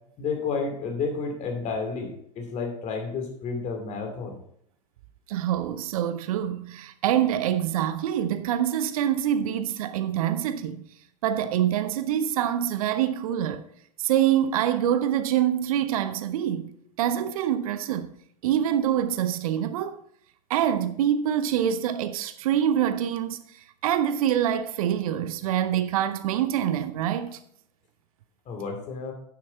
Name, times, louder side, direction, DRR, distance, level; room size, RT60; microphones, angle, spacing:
voice 1, 0.2-2.1 2.3-4.4 28.5-29.1, left 4 dB, 35° left, 2.6 m, -31 dB
voice 2, 5.3-10.8 11.2-13.6 14.0-16.7 17.0-18.1 18.4-20.0 20.5-23.4 23.8-27.4, right 10 dB, 60° right, 0.7 m, -25 dB
9.5 x 7.4 x 4.3 m
figure-of-eight pair, 85°, 21 cm